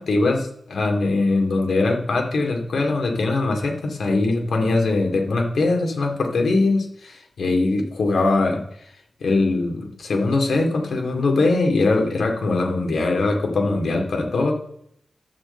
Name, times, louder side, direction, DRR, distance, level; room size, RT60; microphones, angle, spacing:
voice 1, 0.0-8.6 9.2-14.5, left 3 dB, 80° left, 2 dB, 2.4 m, -21 dB
12.0 x 4.5 x 7.9 m, 0.70 s
wide cardioid pair, 140°, 0 cm